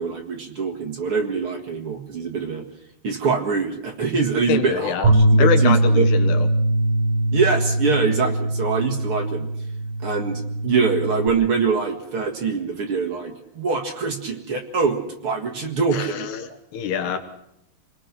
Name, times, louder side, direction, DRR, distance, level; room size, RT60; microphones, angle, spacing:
voice 1, 0.0-2.6 3.0-6.1 7.3-9.5 10.0-16.3, right 5 dB, 45° right, 2 dB, 2.1 m, -24 dB
voice 2, 4.5-5.1 5.4-6.5 15.9-17.2, left 8 dB, 80° left, 8 dB, 3.3 m, -25 dB
Bass guitar, 5.0-11.3, right 1 dB, 70° right, 5.6 m, -21 dB
28.0 x 20.0 x 6.0 m, 0.80 s
omnidirectional pair, 4.6 m